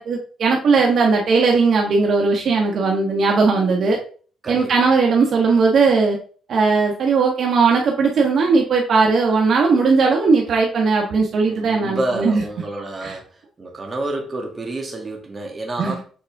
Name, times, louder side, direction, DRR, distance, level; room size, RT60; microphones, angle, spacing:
voice 1, 0.0-4.0 4.5-6.2 6.5-12.4 13.0-13.2 15.8-15.9, right 4 dB, 60° right, 1 dB, 1.4 m, -18 dB
voice 2, 4.4-4.9 11.5-13.3 13.6-16.0, right 2 dB, 30° right, 1 dB, 2.1 m, -29 dB
7.5 x 4.2 x 3.6 m, 0.42 s
cardioid pair, 90°, 0 cm